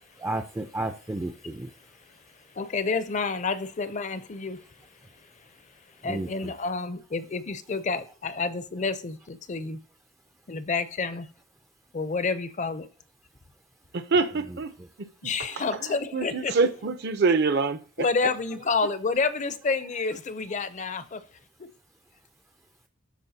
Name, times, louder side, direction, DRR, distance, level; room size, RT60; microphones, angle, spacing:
voice 1, 0.2-1.7 6.0-6.5 14.5-14.6, right 2 dB, 15° right, 0.4 m, -32 dB
voice 2, 2.5-4.6 6.0-9.8 10.5-11.3 11.9-12.9 15.2-16.5 18.0-21.2, left 4 dB, 35° left, 0.5 m, -29 dB
voice 3, 13.9-14.7 15.0-15.1 15.6-18.3, right 4 dB, 55° right, 0.7 m, -26 dB
13.5 x 4.5 x 2.7 m
head